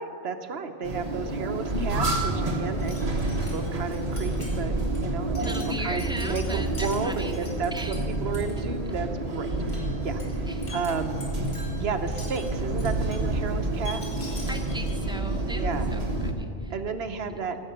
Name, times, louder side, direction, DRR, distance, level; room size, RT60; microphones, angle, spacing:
voice 1, 0.0-3.0 3.4-5.5 5.8-10.2 10.7-11.1 11.8-14.0 15.5-15.9 16.7-17.6, right 5 dB, 60° right, 7 dB, 0.9 m, -33 dB
sound 1, 0.8-16.3, right 2 dB, 35° right, 1.2 m, -29 dB
Wind chime, 1.6-15.3, right 1 dB, 35° left, 2.5 m, -38 dB
voice 2, 5.4-7.5 7.7-8.0 10.4-10.8 14.5-16.7 17.3-17.4, right 1 dB, 5° right, 3 dB, 0.6 m, -37 dB
15.0 x 6.7 x 7.8 m, 2.6 s
omnidirectional pair, 1.3 m